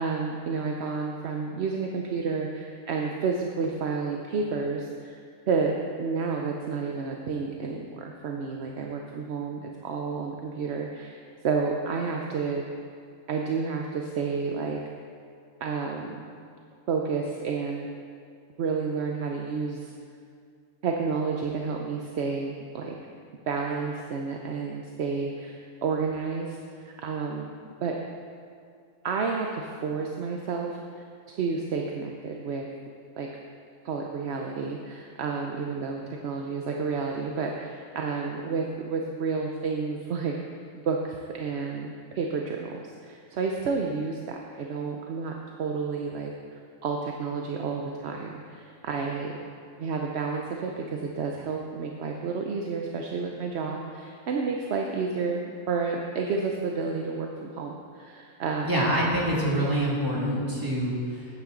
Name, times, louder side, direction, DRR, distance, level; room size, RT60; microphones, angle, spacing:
voice 1, 0.0-5.2 5.5-12.6 13.3-14.8 15.6-16.3 16.9-17.9 18.6-19.9 20.8-22.9 23.5-27.5 27.8-27.9 29.0-32.6 33.2-33.3 33.8-45.3 45.6-46.3 46.8-49.4 49.8-58.7, right 5 dB, 55° right, 1 dB, 0.8 m, -30 dB
voice 2, 58.6-61.4, right 1 dB, 15° right, -6 dB, 2.2 m, -26 dB
13.0 x 8.9 x 3.8 m, 2.3 s
omnidirectional pair, 1.6 m